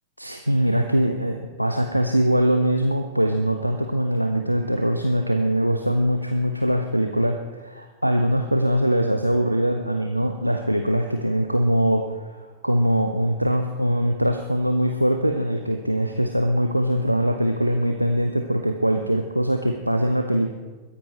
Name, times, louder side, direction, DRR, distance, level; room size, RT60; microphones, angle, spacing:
voice 1, 0.2-20.5, equal, 90° right, 5 dB, 0.7 m, -22 dB
21.5 x 10.0 x 4.3 m, 1.3 s
figure-of-eight pair, 90°, 0 cm